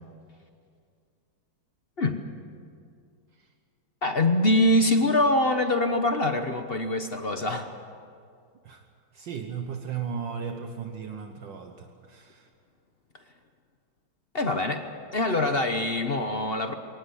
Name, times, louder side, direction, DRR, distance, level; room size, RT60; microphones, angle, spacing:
voice 1, 4.0-7.7 14.3-14.9 15.1-16.7, left 1 dB, 40° left, 7 dB, 1.0 m, -24 dB
voice 2, 9.1-12.5, right 7 dB, 65° right, 5 dB, 1.8 m, -36 dB
22.5 x 19.0 x 8.1 m, 2.3 s
omnidirectional pair, 2.2 m